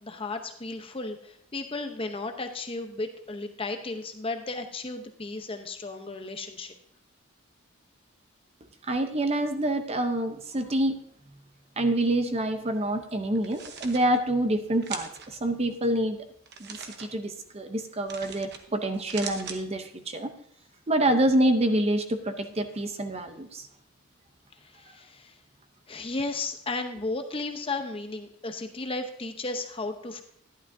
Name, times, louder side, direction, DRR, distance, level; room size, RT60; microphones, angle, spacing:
voice 1, 0.0-6.7 24.6-25.4 25.9-30.2, left 3 dB, 25° left, 6 dB, 0.8 m, -34 dB
voice 2, 8.8-11.0 11.8-16.2 16.6-20.3 20.9-23.6, right 1 dB, 30° right, 7 dB, 0.7 m, -27 dB
sound 1, 13.4-14.0 14.8-15.3 16.5-17.1 18.1-18.6 18.9-19.6, right 6 dB, 50° right, 1.0 m, -40 dB
12.0 x 11.0 x 2.7 m, 0.68 s
head